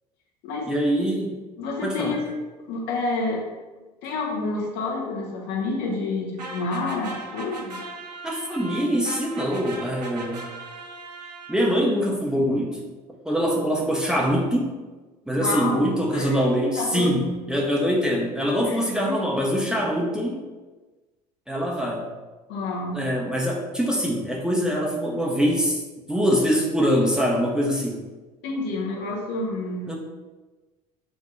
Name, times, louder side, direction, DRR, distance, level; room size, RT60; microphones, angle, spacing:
voice 1, 0.7-1.4 1.8-2.2 8.2-10.5 11.5-12.8 13.2-14.7 15.3-20.4 21.5-22.1 22.9-25.8 26.1-28.0 29.9-30.0, equal, 5° right, -2 dB, 0.8 m, -23 dB
voice 2, 1.6-2.3 2.7-3.5 4.0-7.8 15.4-16.4 16.8-17.2 18.6-18.8 19.1-19.2 22.5-23.0 28.4-30.0, left 3 dB, 55° left, -2 dB, 1.2 m, -29 dB
sound 1, 6.4-11.9, right 3 dB, 85° right, 0.5 m, -38 dB
7.4 x 2.7 x 2.5 m, 1.2 s
figure-of-eight pair, 65°, 20 cm